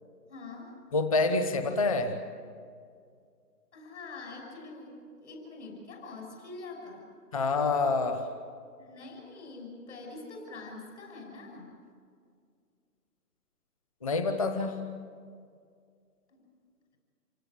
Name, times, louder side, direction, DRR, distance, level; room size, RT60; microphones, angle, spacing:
voice 1, 0.3-0.7 3.7-5.0 5.2-7.1 8.8-11.8 16.3-16.4, left 3 dB, 45° left, 1 dB, 6.3 m, -44 dB
voice 2, 0.9-2.1 7.3-8.2 14.0-14.8, left 3 dB, 20° left, 7 dB, 1.1 m, -27 dB
28.0 x 17.0 x 8.8 m, 2.2 s
figure-of-eight pair, 155°, 48 cm